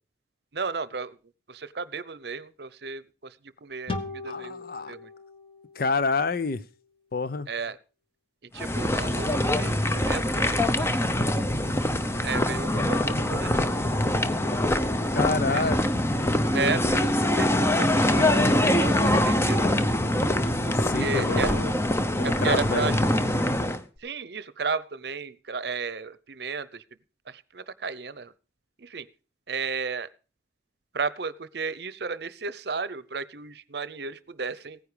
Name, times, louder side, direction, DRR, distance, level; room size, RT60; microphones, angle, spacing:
voice 1, 0.5-1.2 1.5-3.3 3.6-5.1 7.5-7.8 8.5-11.0 12.2-13.6 15.5-15.6 16.5-19.7 20.8-21.5 22.2-23.1 24.0-26.8 27.3-28.3 28.8-29.1 29.5-30.1 30.9-34.8, right 4 dB, 60° right, 0.7 m, -33 dB
sound 1, 3.9-7.2, left 3 dB, 30° left, 1.4 m, -39 dB
voice 2, 4.3-4.9 5.7-6.6 7.1-7.5 15.1-15.8 20.7-21.7 22.2-23.0, left 4 dB, 50° left, 0.6 m, -28 dB
sound 2, 8.6-23.8, left 1 dB, 15° left, 0.8 m, -24 dB
sound 3, 18.6-19.3 19.6-20.1 20.4-20.5 20.9-22.2 22.5-22.6 23.1-23.2, right 1 dB, 5° right, 1.1 m, -41 dB
16.5 x 9.7 x 5.0 m
head